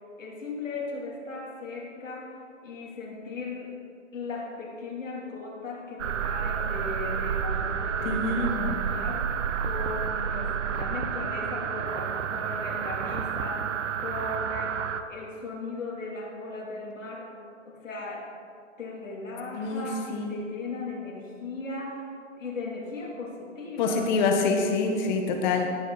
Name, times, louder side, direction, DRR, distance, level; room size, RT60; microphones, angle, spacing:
voice 1, 0.2-3.8 4.1-9.3 9.6-13.7 14.0-14.8 15.1-17.4 17.6-18.3 18.8-22.1 22.4-24.1, left 3 dB, 85° left, -2 dB, 2.9 m, -37 dB
sound 1, 6.0-15.0, right 7 dB, 70° right, 0.8 m, -30 dB
voice 2, 8.0-8.8 19.6-20.4 23.8-25.8, left 3 dB, 35° left, 4 dB, 1.2 m, -26 dB
17.0 x 6.2 x 4.0 m, 2.3 s
hypercardioid pair, 135°, 38 cm